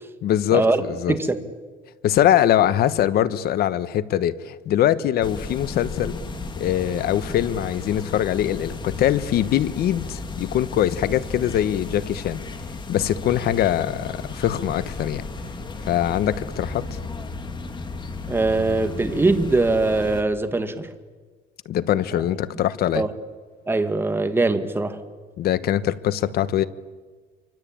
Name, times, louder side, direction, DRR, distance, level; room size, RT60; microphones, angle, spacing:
voice 1, 0.2-1.2 2.0-6.2 6.6-12.4 12.9-15.3 15.9-16.9 21.6-23.1 25.4-26.6, left 11 dB, 60° left, 1.2 m, -22 dB
voice 2, 1.1-1.4 18.3-20.9 22.9-23.1 23.7-25.0, right 3 dB, 10° right, 1.9 m, -21 dB
sound 1, 5.2-20.2, left 3 dB, 25° left, 2.6 m, -34 dB
27.0 x 25.0 x 8.8 m
cardioid pair, 135°, 18 cm